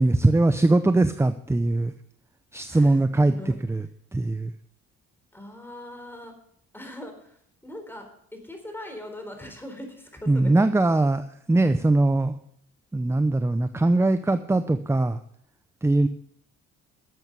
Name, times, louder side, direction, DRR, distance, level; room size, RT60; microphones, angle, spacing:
voice 1, 0.0-1.9 2.5-4.5 10.3-12.3 12.9-15.2 15.8-16.1, right 2 dB, 10° right, 11 dB, 0.6 m, -21 dB
voice 2, 2.7-3.6 5.3-6.3 6.7-7.3 7.6-8.0 8.3-10.6, left 1 dB, 5° left, 4 dB, 3.9 m, -40 dB
12.0 x 7.9 x 6.7 m, 0.68 s
cardioid pair, 90°, 30 cm